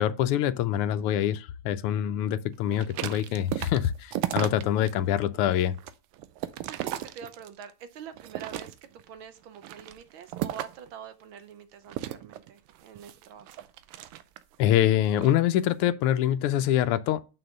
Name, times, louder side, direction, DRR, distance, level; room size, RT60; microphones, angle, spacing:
voice 1, 0.0-5.7 14.6-17.2, left 11 dB, 90° left, 1.5 m, -25 dB
sound 1, 2.7-4.9 5.3-7.7 8.2-9.0 9.5-10.9 11.9-14.6 15.0-15.4, right 13 dB, 90° right, 1.6 m, -35 dB
voice 2, 6.4-13.7, right 8 dB, 70° right, 1.5 m, -45 dB
6.0 x 5.1 x 6.4 m
omnidirectional pair, 2.4 m